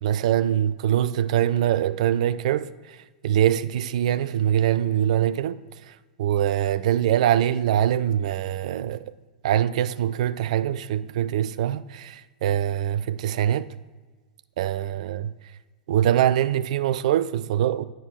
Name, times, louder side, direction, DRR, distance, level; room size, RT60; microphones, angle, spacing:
voice 1, 0.0-9.1 9.4-13.7 14.6-15.3 15.9-17.8, right 11 dB, 55° right, 0.4 m, -23 dB
10.5 x 4.5 x 6.2 m
figure-of-eight pair, 95°, 4 cm